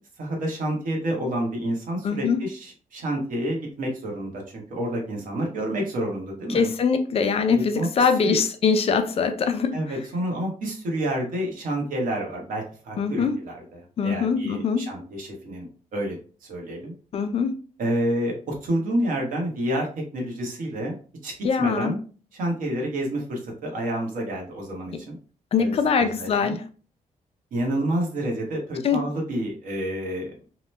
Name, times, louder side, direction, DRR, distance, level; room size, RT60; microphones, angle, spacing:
voice 1, 0.2-6.7 7.5-8.4 9.7-16.9 17.8-21.0 21.2-21.3 21.6-22.0 22.3-25.2 25.6-26.6 27.5-30.3, right 1 dB, 75° right, 1.1 m, -29 dB
voice 2, 2.0-2.4 6.5-9.8 13.0-13.4 14.0-14.9 17.1-17.6 21.4-21.9 25.5-26.6 28.8-29.0, left 5 dB, 45° left, 0.4 m, -23 dB
2.9 x 2.2 x 3.2 m
wide cardioid pair, 155°, 14 cm